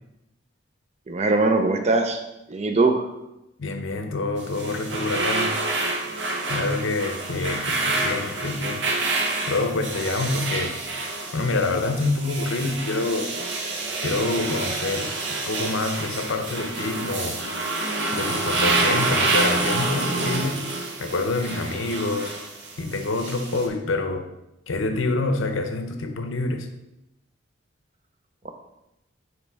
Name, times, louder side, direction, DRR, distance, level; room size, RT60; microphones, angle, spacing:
voice 1, 1.1-2.2 2.5-3.1 28.4-28.5, right 3 dB, 30° right, 5 dB, 0.6 m, -21 dB
voice 2, 3.6-5.5 6.5-8.9 9.5-10.8 11.3-13.3 14.0-15.1 15.5-17.4 18.1-20.6 21.0-22.3 22.8-24.3 24.7-26.7, left 3 dB, 75° left, 6 dB, 0.7 m, -26 dB
sound 1, 4.4-23.7, right 2 dB, 60° right, 1.0 m, -27 dB
9.1 x 3.3 x 3.5 m, 0.91 s
head